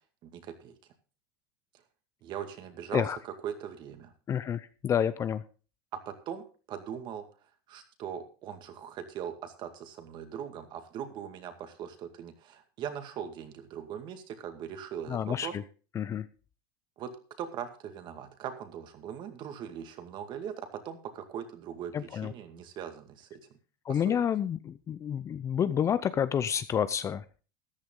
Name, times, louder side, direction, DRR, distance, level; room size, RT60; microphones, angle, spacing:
voice 1, 0.2-0.8 2.2-4.1 6.1-7.3 7.7-15.5 17.0-17.1 17.4-23.4 23.9-24.2, right 9 dB, 40° right, 8 dB, 2.1 m, -40 dB
voice 2, 4.3-5.4 15.1-15.6 15.9-16.3 21.9-22.3 23.8-27.2, left 8 dB, 25° left, 14 dB, 0.6 m, -29 dB
14.0 x 10.5 x 3.8 m, 0.37 s
supercardioid pair, 130°, 11 cm